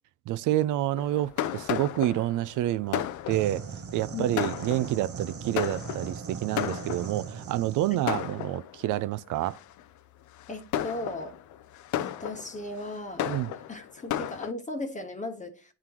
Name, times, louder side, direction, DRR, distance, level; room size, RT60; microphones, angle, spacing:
voice 1, 0.3-3.7 3.9-9.6 13.3-13.5, right 14 dB, 85° right, 0.5 m, -28 dB
Fireworks, 1.0-7.4 8.1-9.0 9.5-9.8 10.4-14.5, left 11 dB, 75° left, 0.5 m, -34 dB
sound 1, 3.3-8.1, right 7 dB, 50° right, 0.7 m, -39 dB
voice 2, 10.5-11.4 12.0-13.4 13.7-15.7, left 2 dB, 25° left, 1.0 m, -37 dB
9.8 x 3.7 x 2.9 m
cardioid pair, 90°, 30 cm